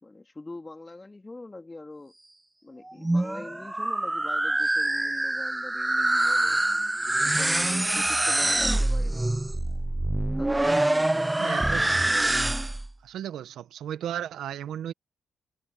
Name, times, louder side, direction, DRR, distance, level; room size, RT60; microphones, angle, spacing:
voice 1, 0.0-2.1 2.6-6.6 7.2-9.2 10.4-11.4, left 2 dB, 25° left, 3.1 m, -43 dB
sound 1, 2.9-12.9, right 1 dB, 15° right, 0.6 m, -25 dB
voice 2, 11.4-12.0 13.0-14.9, right 10 dB, 80° right, 1.2 m, -35 dB
cardioid pair, 65°, 0 cm